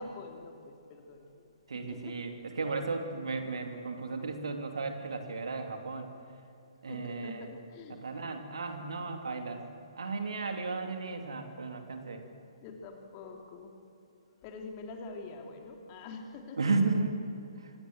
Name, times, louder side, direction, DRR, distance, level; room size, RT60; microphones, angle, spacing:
voice 1, 0.0-2.2 6.8-8.0 12.6-13.7 14.4-16.6, left 3 dB, 30° left, 3 dB, 3.1 m, -45 dB
voice 2, 1.7-6.1 6.8-7.5 7.9-9.6 9.9-12.2 16.6-17.2 17.6-17.7, right 3 dB, 65° right, 5 dB, 2.8 m, -34 dB
25.0 x 20.0 x 7.9 m, 2.8 s
figure-of-eight pair, 125°, 3 cm